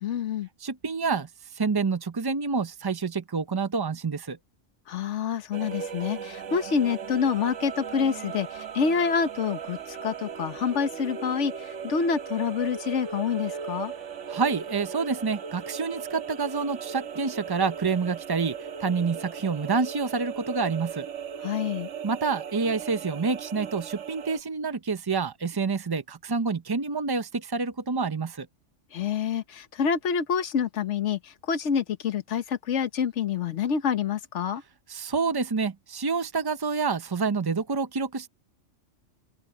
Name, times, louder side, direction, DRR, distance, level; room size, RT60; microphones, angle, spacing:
voice 1, 0.0-0.5 4.9-13.9 21.4-21.9 28.9-34.6, left 6 dB, 70° left, 1.4 m, -27 dB
voice 2, 0.6-4.4 14.3-21.1 22.0-28.5 34.9-38.3, right 4 dB, 40° right, 0.3 m, -28 dB
sound 1, 5.5-24.4, right 7 dB, 70° right, 1.4 m, -37 dB
open air
omnidirectional pair, 1.3 m